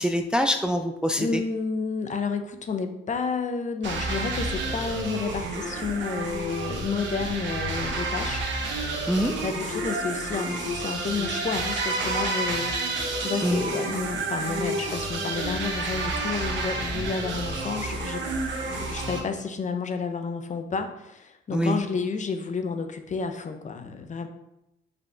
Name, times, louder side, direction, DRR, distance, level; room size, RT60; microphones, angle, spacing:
voice 1, 0.0-1.4 9.1-9.4 13.4-13.6 21.5-21.8, equal, 5° right, 6 dB, 0.4 m, -24 dB
voice 2, 1.2-8.4 9.4-18.2 18.6-24.3, left 5 dB, 40° left, 7 dB, 0.7 m, -31 dB
sound 1, 3.8-19.2, right 2 dB, 70° right, 1.4 m, -30 dB
5.5 x 5.1 x 3.4 m, 0.87 s
cardioid pair, 90°, 20 cm